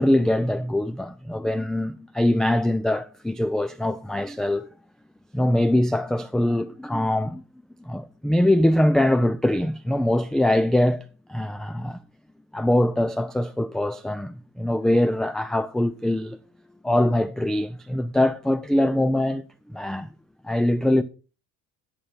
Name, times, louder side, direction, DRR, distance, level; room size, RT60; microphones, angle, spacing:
voice 1, 0.0-4.7 5.3-7.4 7.9-11.0 11.3-12.0 12.5-16.4 16.8-19.4 19.7-20.1 20.4-21.0, left 1 dB, ahead, 0.4 m, -23 dB
11.0 x 7.2 x 5.3 m
hypercardioid pair, 65°, 48 cm